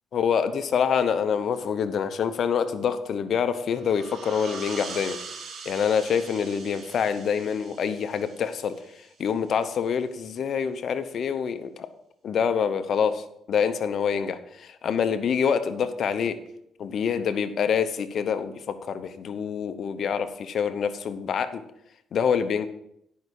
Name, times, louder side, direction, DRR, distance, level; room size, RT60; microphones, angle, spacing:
voice 1, 0.1-5.2 5.6-8.8 9.2-11.9 12.2-16.4 16.8-21.6 22.1-22.7, left 7 dB, 60° left, 11 dB, 0.8 m, -26 dB
sound 1, 3.7-9.1, right 5 dB, 55° right, 1.2 m, -42 dB
10.5 x 5.5 x 4.7 m, 0.76 s
cardioid pair, 90°, 0 cm